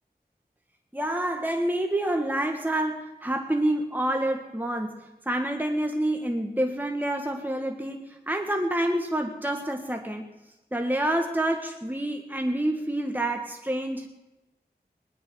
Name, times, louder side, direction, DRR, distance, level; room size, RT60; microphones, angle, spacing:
voice 1, 0.9-10.3 10.7-14.1, right 1 dB, 10° right, 3 dB, 1.5 m, -28 dB
19.5 x 11.5 x 6.3 m, 1.0 s
wide cardioid pair, 40°, 17 cm